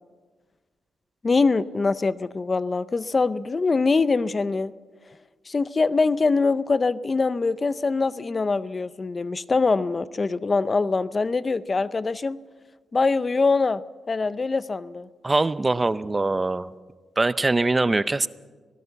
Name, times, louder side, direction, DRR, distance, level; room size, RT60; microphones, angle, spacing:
voice 1, 1.2-4.7 5.5-12.4 12.9-13.8 14.1-15.1, left 4 dB, 30° left, 16 dB, 0.6 m, -23 dB
voice 2, 15.2-16.7 17.2-18.3, right 2 dB, 20° right, 16 dB, 0.5 m, -22 dB
24.0 x 18.0 x 7.0 m, 1.4 s
cardioid pair, 105°, 0 cm